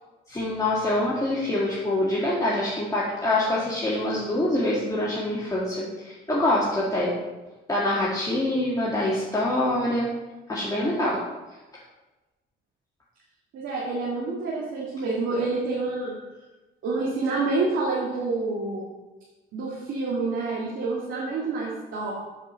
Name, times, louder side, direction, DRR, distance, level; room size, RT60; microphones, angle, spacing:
voice 1, 0.3-7.1 7.7-10.1 10.5-11.2, left 1 dB, 20° left, -6 dB, 1.9 m, -25 dB
voice 2, 13.5-16.2 16.8-18.8 19.5-22.1, right 3 dB, 80° right, -5 dB, 2.0 m, -28 dB
8.3 x 5.0 x 6.2 m, 1.1 s
cardioid pair, 90°, 20 cm